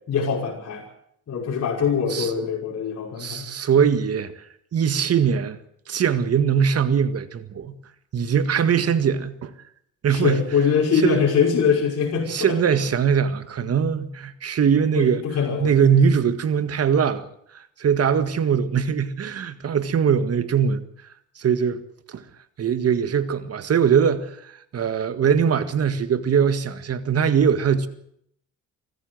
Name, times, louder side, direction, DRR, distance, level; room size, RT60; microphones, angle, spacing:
voice 1, 0.1-0.8 1.3-3.5 10.1-12.6 14.9-15.7, left 6 dB, 55° left, 5.7 m, -23 dB
voice 2, 3.2-4.4 4.7-5.6 5.9-7.8 8.1-9.5 10.0-10.4 11.0-11.2 12.3-15.2 15.6-17.3 17.5-20.8 21.4-21.8 22.1-22.2 22.6-27.9, right 7 dB, 55° right, 1.9 m, -21 dB
24.5 x 14.5 x 7.9 m
cardioid pair, 90°, 30 cm